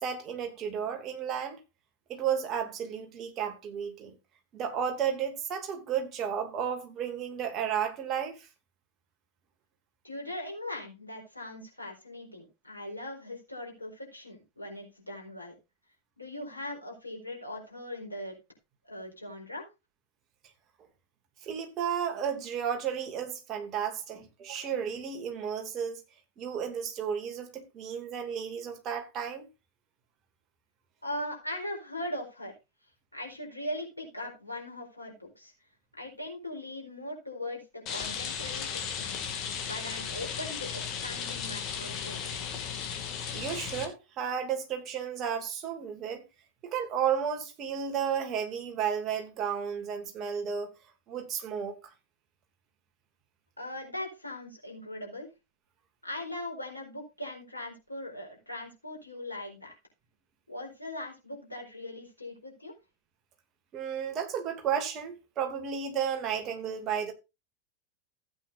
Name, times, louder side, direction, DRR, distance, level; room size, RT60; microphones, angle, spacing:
voice 1, 0.0-1.6 2.1-4.2 4.5-8.5 21.4-26.0 26.4-29.5 43.3-46.2 46.6-50.7 51.1-51.8 63.7-67.1, right 8 dB, 30° right, 2.7 m, -33 dB
voice 2, 10.0-15.5 16.2-18.4 18.8-19.7 31.0-32.5 33.1-35.5 35.9-39.2 39.6-42.5 53.6-55.3 56.0-59.7 60.5-62.7, left 1 dB, 80° left, 4.4 m, -40 dB
Rain, 37.9-43.8, left 7 dB, 35° left, 2.4 m, -35 dB
15.0 x 8.8 x 2.7 m
figure-of-eight pair, 90°, 0 cm